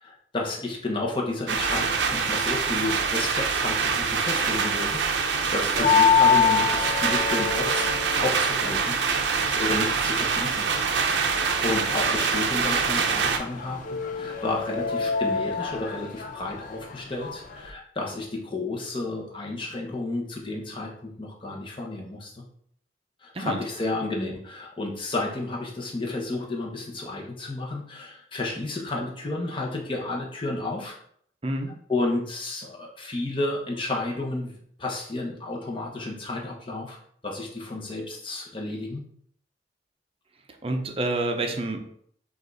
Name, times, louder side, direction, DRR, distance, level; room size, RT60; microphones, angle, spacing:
voice 1, 0.0-9.0 9.6-10.7 11.0-22.4 23.2-31.0 31.9-37.0 37.2-39.1, left 2 dB, 30° left, -1 dB, 0.9 m, -32 dB
sound 1, 1.5-13.4, right 5 dB, 85° right, 0.6 m, -25 dB
sound 2, 5.8-17.7, left 6 dB, 50° left, 0.5 m, -27 dB
voice 2, 31.4-31.7 40.6-41.8, right 2 dB, 35° right, 4 dB, 0.6 m, -28 dB
5.2 x 2.5 x 3.9 m, 0.65 s
head